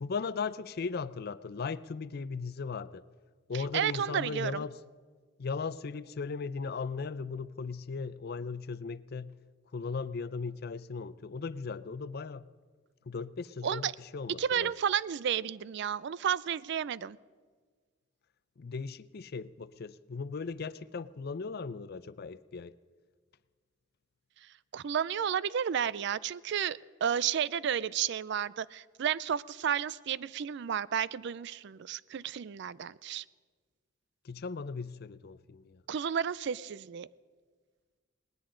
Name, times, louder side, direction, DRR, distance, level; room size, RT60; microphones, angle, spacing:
voice 1, 0.0-3.0 3.5-4.8 5.4-9.3 9.7-12.5 13.1-14.7 18.6-22.7 34.2-35.8, left 4 dB, 55° left, 16 dB, 0.5 m, -37 dB
voice 2, 3.5-4.6 13.6-13.9 14.4-17.2 24.7-33.2 35.9-37.1, right 8 dB, 65° right, 20 dB, 0.4 m, -32 dB
19.5 x 19.0 x 3.8 m, 1.6 s
head